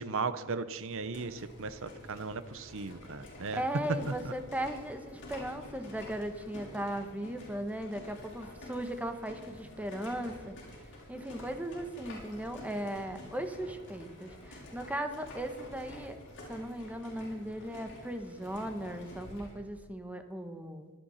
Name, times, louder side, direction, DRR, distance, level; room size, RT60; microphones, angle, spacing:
voice 1, 0.0-3.6 4.2-4.3, right 4 dB, 60° right, 13 dB, 0.9 m, -37 dB
sound 1, 0.7-19.6, left 1 dB, 55° left, 5.7 m, -49 dB
voice 2, 3.5-10.5 11.1-16.2 16.5-20.9, right 1 dB, 5° right, 7 dB, 1.4 m, -37 dB
24.5 x 9.5 x 5.7 m, 1.3 s
head